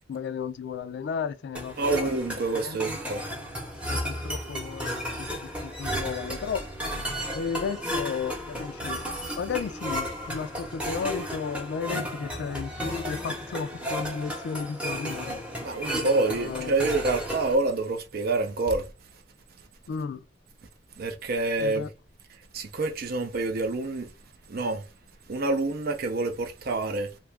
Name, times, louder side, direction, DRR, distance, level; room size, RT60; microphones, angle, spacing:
voice 1, 0.1-2.1 2.6-2.8 3.9-4.9 5.2-5.3 5.6-6.7 7.3-9.0 9.4-15.4 15.9-16.9 19.9-20.2 21.6-21.9, left 6 dB, 65° left, 0.3 m, -34 dB
sound 1, 1.5-17.5, equal, 5° right, 0.8 m, -33 dB
voice 2, 1.8-3.2 15.6-18.9 21.0-21.9 22.5-24.1 24.5-24.9 25.3-27.2, right 3 dB, 55° right, 0.5 m, -27 dB
2.7 x 2.4 x 3.3 m
head